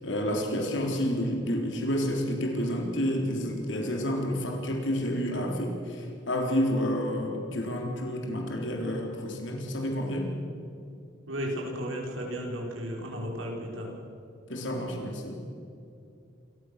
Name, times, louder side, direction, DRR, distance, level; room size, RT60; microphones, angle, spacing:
voice 1, 0.0-6.0 6.3-10.3 14.5-15.4, equal, 70° left, 1 dB, 3.7 m, -29 dB
voice 2, 11.3-13.9, equal, 85° right, -1 dB, 4.8 m, -34 dB
27.5 x 15.0 x 6.6 m, 2.6 s
head